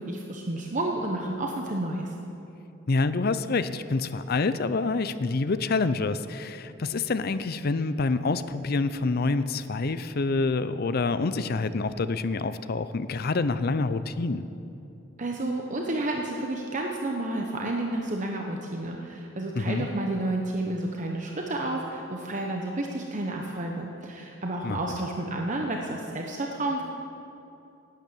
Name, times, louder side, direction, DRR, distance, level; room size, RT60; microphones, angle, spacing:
voice 1, 0.0-2.1 15.2-26.8, right 2 dB, 40° right, 1 dB, 1.0 m, -31 dB
voice 2, 2.9-14.4 19.6-19.9 24.6-24.8, left 3 dB, 50° left, 13 dB, 0.5 m, -27 dB
12.0 x 9.2 x 8.5 m, 2.8 s
head